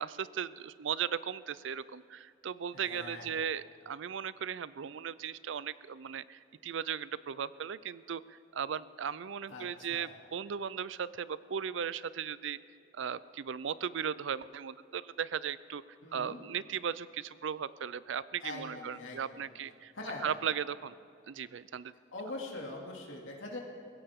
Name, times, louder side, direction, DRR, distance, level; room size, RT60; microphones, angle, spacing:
voice 1, 0.0-12.6 12.9-15.8 16.1-19.9 20.2-20.9 21.3-21.9, right 7 dB, 80° right, 17 dB, 0.4 m, -37 dB
voice 2, 2.7-3.3 9.5-10.1 16.0-16.4 18.4-19.5 19.9-20.3 22.1-23.6, left 2 dB, 85° left, -1 dB, 2.4 m, -43 dB
21.0 x 16.5 x 3.7 m, 2.5 s
head